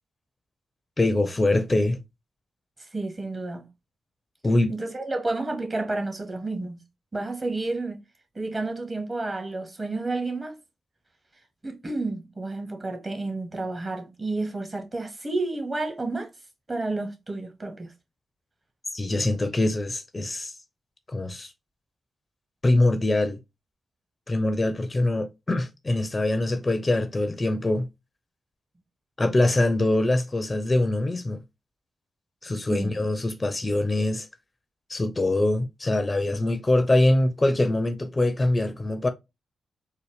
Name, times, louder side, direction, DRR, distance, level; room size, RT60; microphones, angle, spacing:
voice 1, 1.0-2.0 4.4-4.7 18.9-20.5 21.1-21.5 22.6-23.4 24.3-27.9 29.2-31.4 32.4-34.3 34.9-39.1, left 2 dB, 30° left, 0.6 m, -23 dB
voice 2, 2.8-3.7 4.7-6.8 7.1-8.0 8.3-10.5 11.6-16.3 16.7-17.9 32.7-32.9, right 2 dB, 35° right, 1.4 m, -30 dB
3.9 x 2.1 x 3.4 m
supercardioid pair, 40°, 0 cm